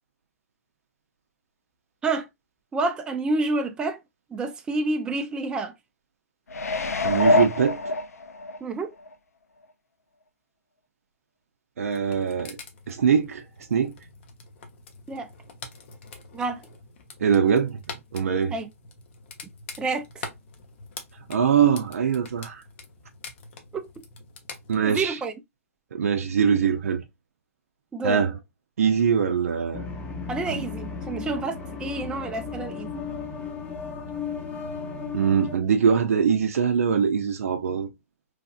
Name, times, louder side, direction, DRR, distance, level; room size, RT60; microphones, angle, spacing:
voice 1, 2.7-4.0 4.3-5.7 8.6-8.9 15.1-15.3 16.3-16.6 18.5-18.7 19.8-20.3 23.7-23.9 24.8-25.3 27.9-28.2 30.3-33.0, right 3 dB, 10° right, 0.4 m, -28 dB
sound 1, 6.5-8.6 9.1-9.2, left 2 dB, 80° left, 0.5 m, -24 dB
voice 2, 7.0-7.9 11.8-12.6 12.9-13.4 13.7-13.9 17.2-17.8 18.1-18.6 21.3-22.6 24.7-25.2 25.9-27.0 28.0-28.4 28.8-29.9 30.5-30.7 35.1-37.9, right 7 dB, 70° right, 0.5 m, -22 dB
sound 2, 11.8-25.0, left 4 dB, 50° left, 0.8 m, -45 dB
sound 3, 29.7-35.6, left 5 dB, 15° left, 0.8 m, -35 dB
3.2 x 2.4 x 2.4 m
hypercardioid pair, 120°, 8 cm